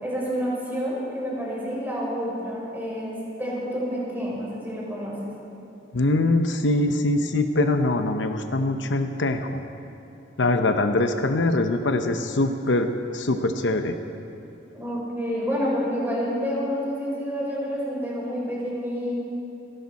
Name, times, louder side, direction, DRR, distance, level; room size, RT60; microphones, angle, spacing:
voice 1, 0.0-5.2 14.7-19.1, equal, 10° right, -6 dB, 4.9 m, -28 dB
voice 2, 5.9-9.6 10.4-14.0, left 2 dB, 80° left, 6 dB, 0.9 m, -23 dB
29.5 x 11.0 x 4.2 m, 2.8 s
head